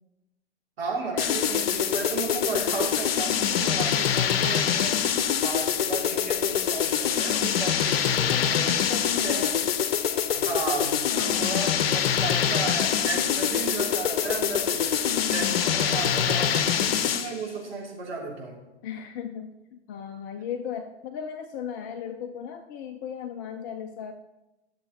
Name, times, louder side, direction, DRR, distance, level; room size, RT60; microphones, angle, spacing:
voice 1, 0.8-9.5 10.3-14.8 15.2-18.5, right 4 dB, 60° right, -4 dB, 3.5 m, -34 dB
sound 1, 1.2-17.4, left 8 dB, 60° left, 0.8 m, -25 dB
voice 2, 8.3-9.8 11.1-11.7 15.1-15.7 18.8-24.1, left 8 dB, 20° left, 6 dB, 0.3 m, -36 dB
sound 2, 10.1-16.4, right 8 dB, 20° right, 0.9 m, -45 dB
11.5 x 6.7 x 4.1 m, 1.0 s
figure-of-eight pair, 105°, 34 cm